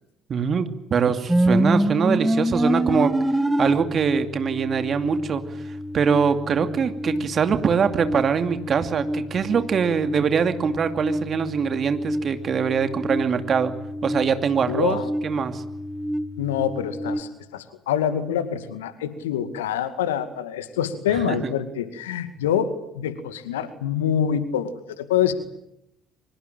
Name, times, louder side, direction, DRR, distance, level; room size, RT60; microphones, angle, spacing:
voice 1, 0.3-3.1 3.6-13.7 14.0-15.6 21.3-21.5, right 6 dB, 40° right, 8 dB, 2.5 m, -23 dB
sound 1, 1.3-17.2, equal, 10° right, 1.6 m, -27 dB
voice 2, 14.7-15.1 16.4-25.3, left 9 dB, 80° left, 11 dB, 2.2 m, -26 dB
25.0 x 23.0 x 9.1 m, 0.80 s
hypercardioid pair, 55°, 0 cm